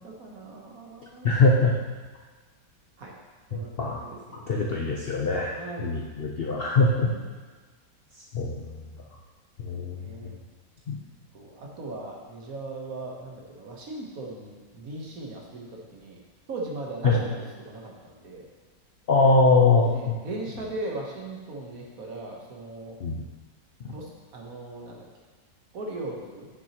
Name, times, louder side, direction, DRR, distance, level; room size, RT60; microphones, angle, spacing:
voice 1, 0.0-1.3 3.0-3.2 3.5-5.2 5.6-5.9 7.0-7.3 10.0-10.4 11.3-16.2 16.5-18.5 19.8-22.9 23.9-25.1 25.7-26.5, right 2 dB, 55° right, -1 dB, 1.5 m, -38 dB
voice 2, 1.2-1.7 3.5-4.0 4.5-5.5 5.8-7.1 8.3-8.7 9.6-10.0 10.9-11.0 17.0-17.2 19.1-20.2 23.0-23.2 23.8-23.9, left 3 dB, 60° left, -2 dB, 0.6 m, -22 dB
9.7 x 6.1 x 2.9 m, 1.4 s
omnidirectional pair, 1.8 m